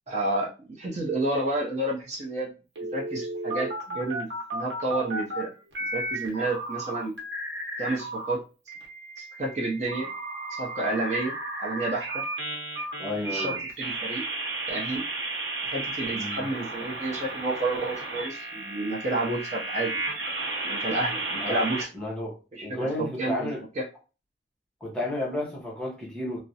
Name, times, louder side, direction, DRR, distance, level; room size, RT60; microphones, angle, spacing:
voice 1, 0.1-2.5 2.9-5.5 5.9-7.2 7.8-8.4 9.2-10.1 10.5-11.3 11.6-12.2 13.2-14.3 14.7-15.0 15.6-19.9 20.6-21.9 22.5-23.8, right 2 dB, 35° right, 0.5 m, -30 dB
sound 1, 2.7-5.4 5.7-8.3 8.7-21.8, right 2 dB, 70° right, 0.9 m, -33 dB
voice 2, 13.0-13.6 16.1-16.4 21.3-21.7 21.9-22.4 22.6-23.6 24.8-26.4, left 1 dB, 5° left, 0.7 m, -32 dB
2.3 x 2.0 x 2.7 m
head